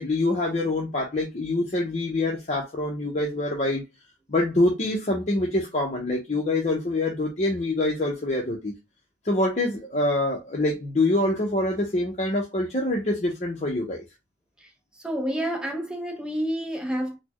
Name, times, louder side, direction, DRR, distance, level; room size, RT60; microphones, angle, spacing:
voice 1, 0.0-3.8 4.3-8.7 9.2-14.0, left 2 dB, 40° left, 0.6 m, -25 dB
voice 2, 15.0-17.2, equal, 5° right, 0.6 m, -29 dB
4.1 x 2.1 x 2.9 m
head